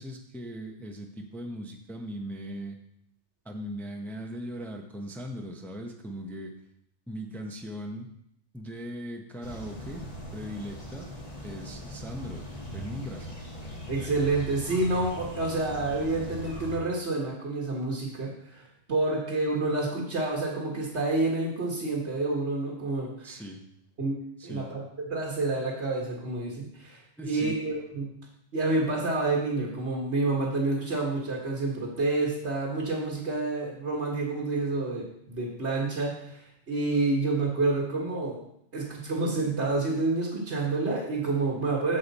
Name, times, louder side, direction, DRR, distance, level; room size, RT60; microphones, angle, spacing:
voice 1, 0.0-2.8 3.4-6.5 7.1-8.1 8.5-10.0 10.3-11.1 11.4-12.4 12.7-13.3 23.2-23.6 24.4-24.7 27.2-27.6, equal, ahead, 2 dB, 0.8 m, -39 dB
sound 1, 9.4-16.8, left 1 dB, 30° left, 1.7 m, -40 dB
voice 2, 13.9-18.6 18.9-23.3 24.0-24.2 24.4-24.8 25.1-28.1 28.5-38.4 38.7-42.0, right 2 dB, 55° right, -2 dB, 1.8 m, -28 dB
15.0 x 5.1 x 4.2 m, 0.75 s
omnidirectional pair, 1.3 m